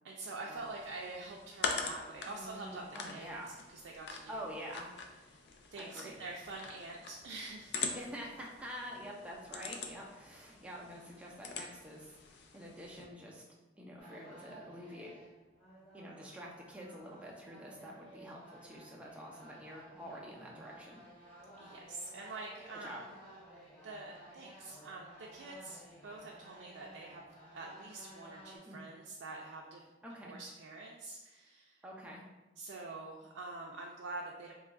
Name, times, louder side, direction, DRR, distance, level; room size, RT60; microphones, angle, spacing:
voice 1, 0.0-2.8 3.1-3.3 3.8-4.4 5.3-5.4 5.7-7.8 21.6-23.1 23.8-27.3 27.5-29.8 30.2-31.8 32.6-34.5, right 3 dB, 80° right, -1 dB, 0.4 m, -46 dB
sound 1, 0.5-13.0, left 4 dB, 60° left, 0.4 m, -44 dB
voice 2, 2.3-3.6 4.3-4.9 5.8-6.2 7.9-13.4 13.8-15.2 15.9-21.0 22.8-23.0 28.7-28.8 30.0-30.4 31.8-32.3, equal, 5° right, -3 dB, 0.5 m, -47 dB
sound 2, 14.0-28.6, right 1 dB, 30° left, 1.2 m, -55 dB
3.0 x 2.3 x 3.5 m, 1.1 s
head